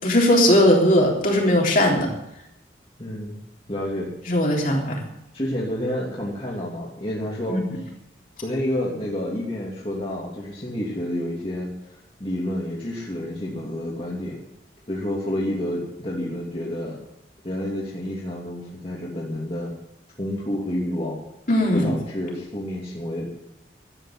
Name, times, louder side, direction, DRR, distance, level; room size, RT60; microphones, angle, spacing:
voice 1, 0.0-2.1 4.3-5.0 7.5-7.6 21.5-21.9, left 1 dB, 50° left, -1 dB, 3.6 m, -18 dB
voice 2, 3.0-3.4 3.7-4.1 5.3-7.6 8.4-11.7 12.2-14.4 14.9-17.0 17.4-19.7 20.2-21.2 21.7-23.3, left 1 dB, 30° left, -5 dB, 2.8 m, -29 dB
13.0 x 9.1 x 9.6 m, 0.85 s
head